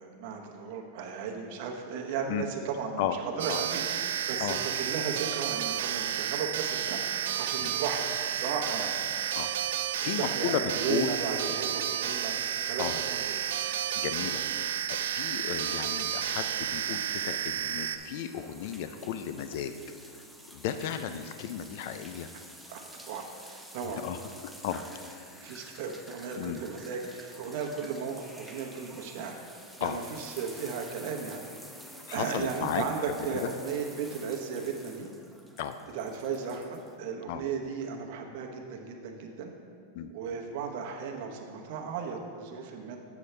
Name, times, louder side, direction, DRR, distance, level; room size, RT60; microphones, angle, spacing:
voice 1, 0.0-8.1 8.3-8.9 10.0-12.4 12.7-13.4 22.7-24.1 25.4-29.4 29.8-31.5 31.7-31.9 32.1-35.1 35.9-39.5 40.1-43.0, right 6 dB, 55° right, 2 dB, 0.9 m, -35 dB
sound 1, 3.4-18.0, right 10 dB, 80° right, 0.4 m, -31 dB
voice 2, 10.0-11.1 12.8-13.0 13.9-19.7 20.5-22.3 24.0-24.2 24.6-24.8 26.4-26.6 29.8-30.0 32.1-32.8 33.3-33.5 35.6-35.7 37.3-37.4 39.9-40.1, left 9 dB, 60° left, 9 dB, 0.3 m, -34 dB
sound 2, 18.0-37.0, equal, ahead, 0.5 m, -49 dB
7.9 x 6.9 x 3.3 m, 2.3 s
supercardioid pair, 150°, 0 cm